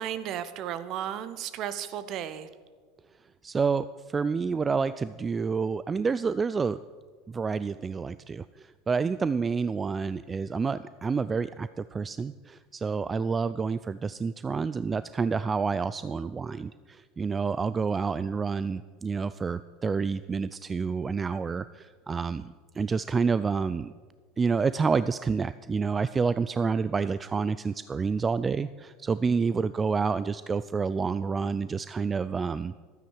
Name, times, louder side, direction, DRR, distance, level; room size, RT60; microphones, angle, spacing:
voice 1, 0.0-2.5, right 10 dB, 50° right, 13 dB, 0.9 m, -34 dB
voice 2, 3.4-6.8 7.3-23.9 24.4-32.8, right 5 dB, 25° right, 15 dB, 0.3 m, -28 dB
12.5 x 9.3 x 6.4 m, 1.5 s
hypercardioid pair, 80°, 0 cm